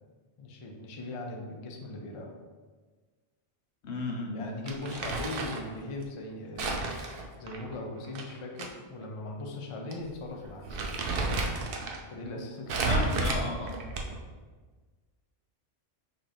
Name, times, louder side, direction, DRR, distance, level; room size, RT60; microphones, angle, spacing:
voice 1, 0.4-2.3 4.3-10.9 11.2-11.5 12.1-13.0 13.5-13.6, left 2 dB, 40° left, 1 dB, 0.4 m, -40 dB
voice 2, 3.8-4.5 12.9-13.8, left 3 dB, 70° left, 2 dB, 1.0 m, -34 dB
Crumpling crinkling, 4.7-5.7 6.6-8.7 9.0-9.1 9.9-10.1 10.4-12.0 12.7-14.3, right 3 dB, 60° right, 0.7 m, -32 dB
5.7 x 2.6 x 3.4 m, 1.4 s
omnidirectional pair, 1.2 m